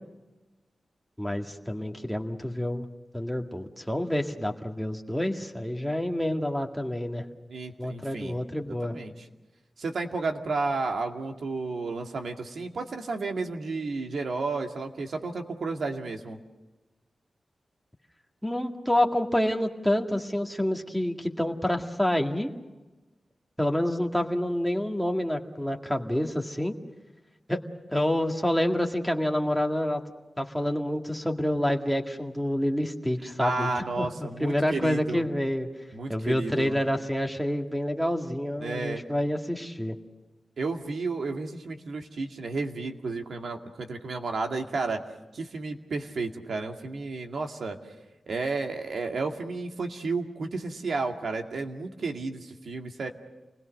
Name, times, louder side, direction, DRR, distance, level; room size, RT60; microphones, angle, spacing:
voice 1, 1.2-2.9 3.1-7.2 7.8-9.0 18.4-22.5 23.6-26.7 27.5-27.6 27.9-30.0 30.4-33.7 34.0-34.1 34.4-35.7 36.1-40.0, left 1 dB, ahead, 2 dB, 2.0 m, -28 dB
voice 2, 7.5-8.3 8.7-9.1 9.8-16.4 33.2-35.2 35.9-36.8 38.6-39.0 40.6-45.0 45.3-47.8 48.3-53.1, right 3 dB, 75° right, 3 dB, 2.2 m, -32 dB
28.5 x 20.5 x 6.6 m, 1.1 s
wide cardioid pair, 105°, 0 cm